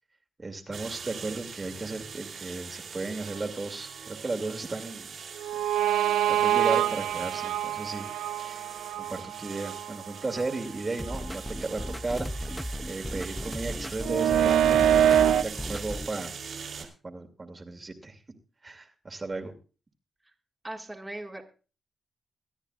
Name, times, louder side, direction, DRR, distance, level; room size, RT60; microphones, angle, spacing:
voice 1, 0.4-5.1 5.9-8.1 8.4-8.6 8.9-12.6 12.8-16.3 16.8-18.2 18.6-19.5, right 3 dB, 35° right, 4 dB, 2.3 m, -35 dB
sound 1, 0.7-16.9, right 6 dB, 70° right, 3.3 m, -42 dB
sound 2, 5.4-10.6 11.1-11.2 14.0-15.4, right 10 dB, 85° right, 0.5 m, -25 dB
sound 3, 11.0-16.1, equal, ahead, 0.6 m, -36 dB
voice 2, 20.6-21.4, right 1 dB, 20° right, -1 dB, 2.1 m, -38 dB
24.5 x 9.8 x 2.4 m, 0.34 s
supercardioid pair, 45°, 0 cm